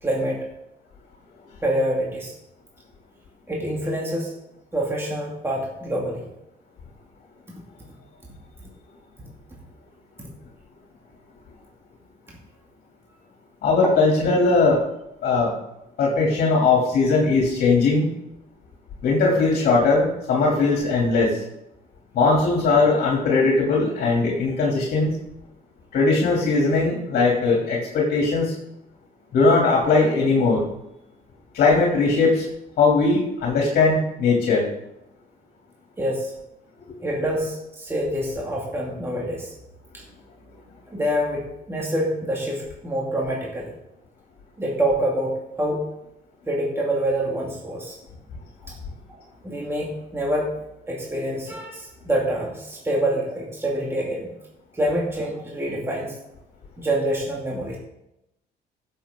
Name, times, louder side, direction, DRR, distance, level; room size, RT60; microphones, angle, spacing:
voice 1, 0.0-0.4 1.6-2.3 3.5-4.3 4.7-6.3 36.0-36.3 37.0-39.5 39.9-40.0 40.9-43.7 44.6-45.8 46.5-48.0 48.6-48.8 49.4-50.5 50.9-54.3 54.7-56.2 56.8-57.8, right 1 dB, 15° right, -3 dB, 2.3 m, -26 dB
voice 2, 13.6-14.8 15.2-15.5 16.0-18.1 19.0-21.4 22.1-25.1 25.9-28.5 29.3-30.6 31.5-32.5 32.8-34.6, left 3 dB, 60° left, -2 dB, 3.1 m, -19 dB
16.0 x 7.3 x 3.8 m, 0.87 s
cardioid pair, 110°, 17 cm